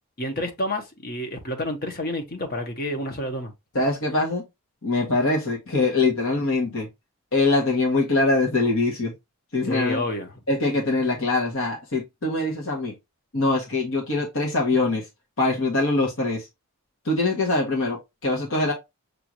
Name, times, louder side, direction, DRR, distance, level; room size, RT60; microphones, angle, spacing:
voice 1, 0.2-3.5 9.6-10.3, left 1 dB, 45° left, 1.0 m, -29 dB
voice 2, 3.7-4.4 4.8-6.9 7.3-9.1 9.5-10.0 10.5-12.9 13.3-15.0 15.4-16.5 17.0-18.7, left 2 dB, 60° left, 1.2 m, -23 dB
6.7 x 2.5 x 2.9 m
head